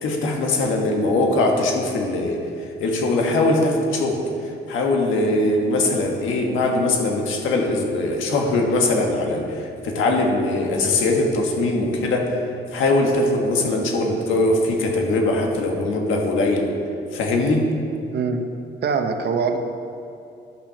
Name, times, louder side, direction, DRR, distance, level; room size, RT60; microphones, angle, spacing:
voice 1, 0.0-2.4 2.8-12.4 12.7-16.7 17.1-17.7, left 2 dB, 85° left, 1 dB, 1.5 m, -21 dB
voice 2, 18.1-18.4 18.8-19.6, right 5 dB, 55° right, 6 dB, 0.9 m, -23 dB
10.5 x 6.1 x 5.7 m, 2.7 s
cardioid pair, 90°, 20 cm